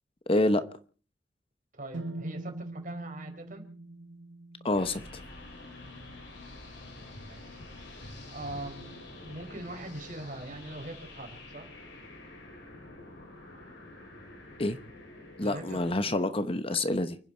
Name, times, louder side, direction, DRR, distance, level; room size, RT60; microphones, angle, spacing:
voice 1, 0.3-0.6 4.6-5.0 14.6-14.8 15.4-17.2, left 2 dB, 30° left, 12 dB, 1.0 m, -27 dB
voice 2, 1.7-3.7 7.2-11.7 15.4-15.8, right 1 dB, 50° right, 5 dB, 4.8 m, -42 dB
sound 1, 1.9-5.9, right 2 dB, 85° right, 1.5 m, -42 dB
sound 2, 4.7-15.9, left 2 dB, 85° left, 7.5 m, -47 dB
29.5 x 10.5 x 4.5 m, 0.40 s
head